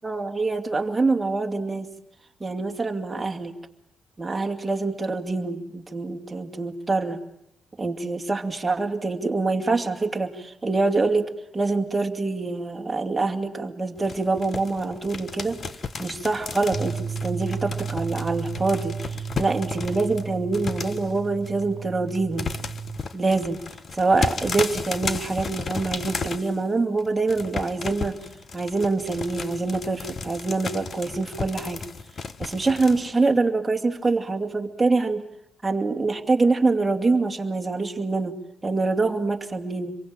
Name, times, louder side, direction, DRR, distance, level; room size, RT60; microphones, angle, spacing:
voice 1, 0.0-1.9 2.4-3.5 4.2-7.2 7.8-15.6 16.0-18.9 19.4-22.5 23.1-23.6 23.9-28.2 28.5-31.8 32.4-35.2 35.6-38.3 38.6-40.0, right 3 dB, 15° right, 3 dB, 2.6 m, -25 dB
sound 1, 14.0-20.2 20.5-21.7 22.1-26.6 27.0-33.1, left 4 dB, 40° left, 1.4 m, -34 dB
sound 2, 16.7-23.0, right 6 dB, 45° right, 1.8 m, -33 dB
27.5 x 23.0 x 9.0 m, 0.75 s
cardioid pair, 110°, 0 cm